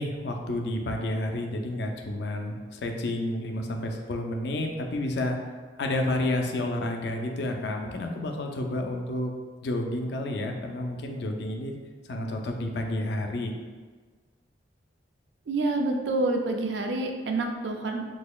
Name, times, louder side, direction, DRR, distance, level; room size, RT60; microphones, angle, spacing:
voice 1, 0.0-5.4 5.8-9.3 9.6-11.7 12.1-13.5, left 1 dB, 65° left, 3 dB, 0.4 m, -30 dB
voice 2, 15.5-18.0, right 2 dB, 75° right, 3 dB, 0.4 m, -27 dB
4.0 x 2.8 x 2.3 m, 1.5 s
head